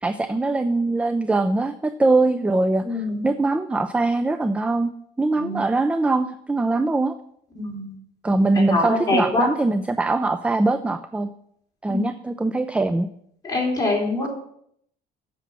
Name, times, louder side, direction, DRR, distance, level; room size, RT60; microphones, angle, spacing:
voice 1, 0.0-4.9 5.2-7.1 8.2-11.3 11.8-13.1, right 2 dB, 5° right, 10 dB, 0.4 m, -22 dB
voice 2, 2.8-3.2 5.4-5.7 7.6-7.9 8.5-9.5 11.9-12.0 13.4-14.3, left 2 dB, 20° left, -3 dB, 3.5 m, -24 dB
8.0 x 5.9 x 6.0 m, 0.70 s
cardioid pair, 110°, 17 cm